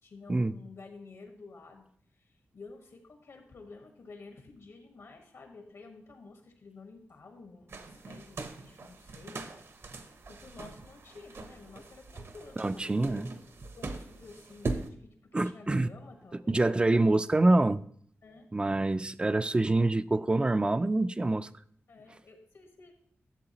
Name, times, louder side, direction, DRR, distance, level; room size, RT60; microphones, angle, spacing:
voice 1, 0.0-1.9 2.2-9.4 10.3-13.3 13.6-17.0 18.2-18.4 21.9-22.9, left 3 dB, 75° left, 1.4 m, -51 dB
sound 1, 7.7-14.9, right 3 dB, 60° right, 0.8 m, -41 dB
voice 2, 12.6-13.3 15.3-15.9 16.3-17.8 18.5-21.5, right 2 dB, 20° right, 0.3 m, -26 dB
11.5 x 7.4 x 2.9 m
wide cardioid pair, 120°, 5 cm